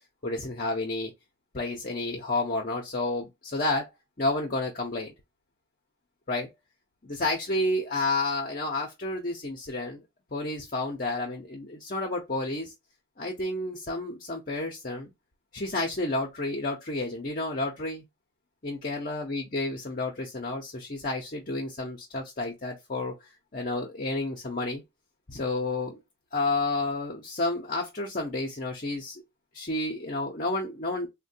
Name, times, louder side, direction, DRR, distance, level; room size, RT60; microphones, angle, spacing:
voice 1, 0.2-1.1 1.5-3.9 4.2-5.1 6.3-6.5 7.0-10.0 10.3-12.7 13.2-15.1 15.5-18.0 18.6-23.1 23.5-24.8 25.3-26.0 26.3-29.2 29.5-31.1, left 2 dB, 45° left, 0.7 m, -30 dB
3.8 x 2.2 x 2.6 m
head